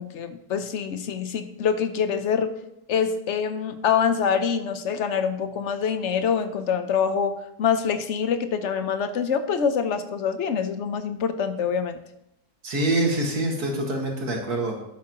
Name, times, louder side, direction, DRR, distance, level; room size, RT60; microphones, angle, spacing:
voice 1, 0.0-2.5 2.9-12.0, left 7 dB, 60° left, 10 dB, 0.9 m, -25 dB
voice 2, 12.6-14.8, right 1 dB, 90° right, 0 dB, 2.4 m, -25 dB
12.0 x 8.6 x 3.0 m, 0.82 s
omnidirectional pair, 1.6 m